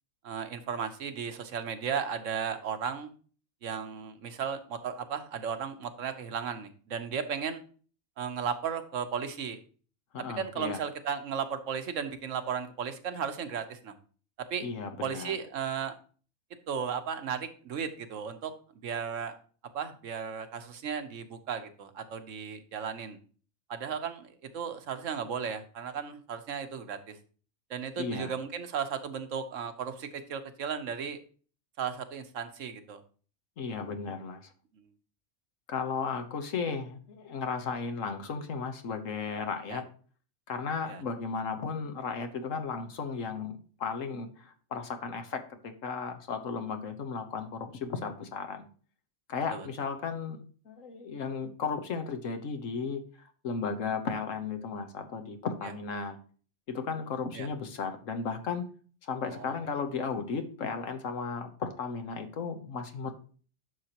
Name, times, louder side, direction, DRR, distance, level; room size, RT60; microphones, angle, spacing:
voice 1, 0.2-3.1 3.6-7.6 8.2-9.6 10.4-13.9 14.5-14.7 15.0-16.0 16.7-18.5 18.8-19.3 19.7-23.2 23.7-27.2 27.7-31.2 31.8-33.0 39.7-39.8 40.9-41.0 49.5-49.7 57.3-57.5 59.3-59.6, right 7 dB, 80° right, 9 dB, 1.3 m, -35 dB
voice 2, 10.1-10.8 14.6-15.4 28.0-28.3 33.6-34.5 35.7-39.8 40.5-48.7 49.3-53.1 53.4-56.2 56.7-58.7 59.0-63.1, left 5 dB, 85° left, 7 dB, 1.4 m, -35 dB
11.0 x 6.6 x 2.9 m, 0.41 s
omnidirectional pair, 1.3 m